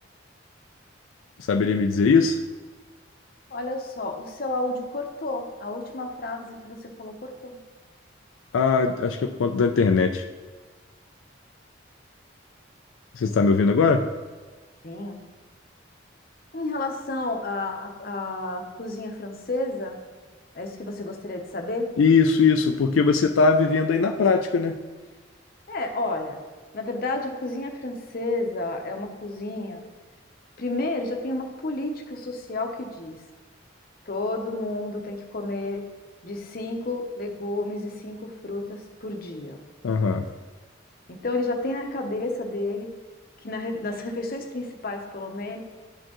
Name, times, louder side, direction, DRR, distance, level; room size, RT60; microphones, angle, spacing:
voice 1, 1.5-2.4 8.5-10.2 13.2-14.1 22.0-24.8 39.8-40.2, left 4 dB, 85° left, 5 dB, 0.4 m, -20 dB
voice 2, 3.5-7.5 14.8-15.2 16.5-20.0 20.5-21.9 25.7-26.4 26.7-29.8 30.6-33.2 34.1-35.8 36.2-39.6 41.1-42.9 43.4-45.6, left 2 dB, 50° left, 3 dB, 0.8 m, -31 dB
12.0 x 4.3 x 3.0 m, 1.3 s
head